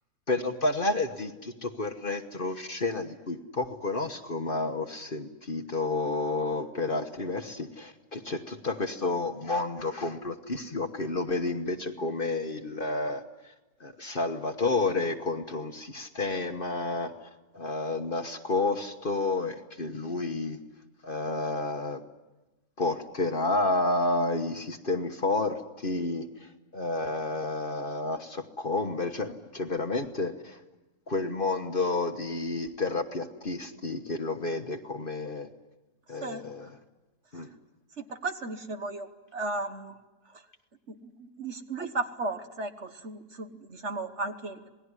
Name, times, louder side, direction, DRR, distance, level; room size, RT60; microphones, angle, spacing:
voice 1, 0.3-13.2 13.8-17.3 17.5-20.6 21.0-22.0 22.8-30.6 31.1-35.5 36.1-36.8 37.3-37.5, left 2 dB, 40° left, 6 dB, 1.3 m, -30 dB
voice 2, 38.0-39.1 39.3-39.9 41.2-44.7, right 3 dB, 50° right, 7 dB, 1.5 m, -35 dB
27.0 x 19.5 x 9.8 m, 1.1 s
omnidirectional pair, 1.6 m